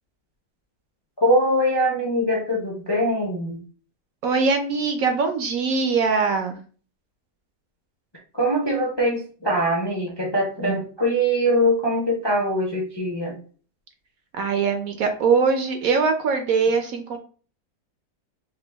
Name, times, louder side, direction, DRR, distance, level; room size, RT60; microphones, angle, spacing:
voice 1, 1.2-3.6 8.3-13.4, equal, 25° left, -1 dB, 0.5 m, -22 dB
voice 2, 4.2-6.6 14.3-17.2, right 5 dB, 65° right, 5 dB, 0.9 m, -22 dB
4.9 x 2.2 x 3.4 m, 0.40 s
omnidirectional pair, 1.8 m